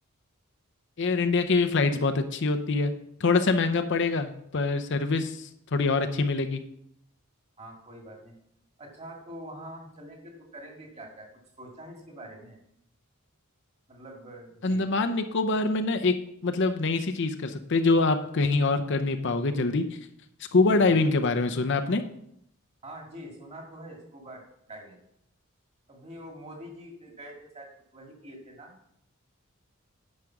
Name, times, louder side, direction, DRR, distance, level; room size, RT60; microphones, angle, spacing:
voice 1, 1.0-2.9 3.2-6.6 14.6-16.1 16.4-19.8 20.5-22.0, left 3 dB, 55° left, 7 dB, 0.6 m, -24 dB
voice 2, 7.6-8.3 8.8-11.3 11.6-12.6 13.9-14.8 20.7-21.0 22.8-24.4 24.7-25.0 25.9-28.7, right 1 dB, 30° right, 0 dB, 2.2 m, -45 dB
9.7 x 5.1 x 5.9 m, 0.73 s
head